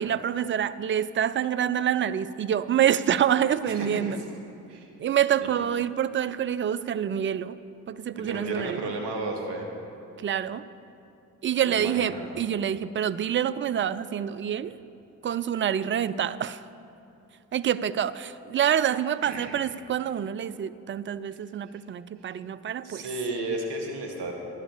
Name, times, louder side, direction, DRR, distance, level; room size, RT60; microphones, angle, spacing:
voice 1, 0.0-4.2 5.0-7.6 7.9-8.8 10.2-10.6 11.4-14.8 15.2-16.6 17.5-23.1, right 9 dB, 30° right, 15 dB, 0.4 m, -27 dB
voice 2, 3.7-4.2 4.7-4.9 8.2-9.7 11.6-12.3 19.2-19.6 21.7-21.8 22.2-22.3 22.8-24.3, right 2 dB, 65° right, 2 dB, 1.7 m, -33 dB
11.0 x 7.5 x 6.5 m, 2.7 s
hypercardioid pair, 45°, 45 cm